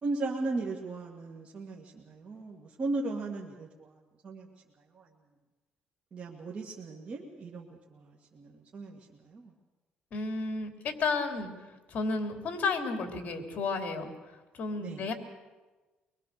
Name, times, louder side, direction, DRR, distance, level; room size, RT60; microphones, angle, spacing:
voice 1, 0.0-4.5 4.9-5.1 6.1-9.5 14.8-15.0, right 3 dB, 40° right, -2 dB, 2.1 m, -37 dB
voice 2, 10.1-11.5 11.9-14.1 14.5-15.1, left 4 dB, 50° left, 4 dB, 3.2 m, -32 dB
24.0 x 22.5 x 6.8 m, 1.2 s
cardioid pair, 135°, 3 cm